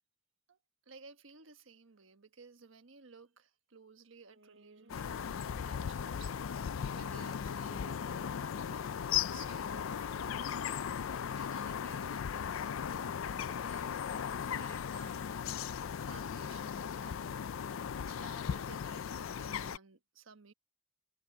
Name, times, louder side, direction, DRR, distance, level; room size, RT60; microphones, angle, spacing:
voice 1, 0.9-10.7 11.2-15.3 16.0-17.4 18.0-20.5, right 5 dB, 80° right, 1.3 m, -57 dB
sound 1, 4.3-12.1, right 1 dB, 65° right, 5.6 m, -62 dB
sound 2, 4.9-19.8, left 8 dB, 85° left, 0.4 m, -37 dB
head